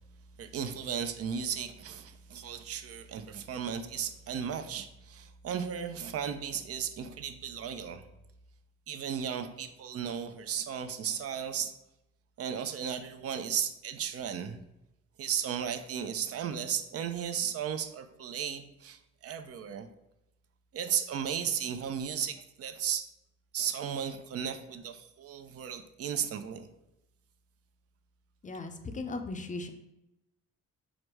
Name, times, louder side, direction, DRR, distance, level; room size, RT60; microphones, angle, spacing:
voice 1, 0.4-8.0 8.9-11.7 12.4-14.6 15.2-19.9 20.7-23.1 23.5-26.7, right 8 dB, 50° right, 9 dB, 0.5 m, -35 dB
voice 2, 28.4-29.7, left 3 dB, 25° left, 7 dB, 0.5 m, -37 dB
5.0 x 2.1 x 4.5 m, 0.90 s
cardioid pair, 90°, 30 cm